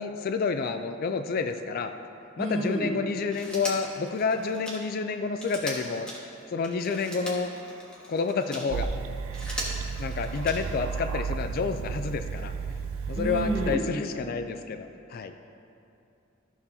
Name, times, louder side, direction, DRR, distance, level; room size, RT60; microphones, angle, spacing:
voice 1, 0.0-1.9 2.4-6.1 6.5-7.5 8.1-8.9 10.0-12.5 13.1-15.3, left 5 dB, 45° left, 8 dB, 0.3 m, -29 dB
voice 2, 2.4-2.9 13.1-13.8, right 1 dB, 35° right, -6 dB, 1.8 m, -29 dB
Telephone, 3.2-8.7 9.2-10.9 12.2-12.3, equal, 5° left, 1.4 m, -40 dB
sound 1, 8.7-13.8, right 5 dB, 80° right, 0.4 m, -33 dB
14.0 x 7.0 x 2.7 m, 2.6 s
head